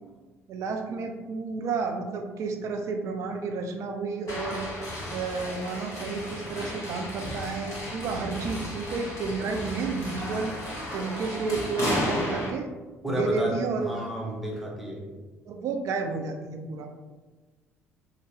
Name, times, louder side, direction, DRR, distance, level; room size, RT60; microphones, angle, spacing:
voice 1, 0.5-4.6 5.1-10.5 10.9-12.7 13.1-13.9 15.5-16.9, right 4 dB, 50° right, 4 dB, 0.3 m, -31 dB
sound 1, 4.3-12.5, equal, 55° left, 1.0 m, -34 dB
voice 2, 13.0-15.1, equal, ahead, -3 dB, 0.9 m, -32 dB
2.8 x 2.1 x 3.0 m, 1.3 s
figure-of-eight pair, 50°, 7 cm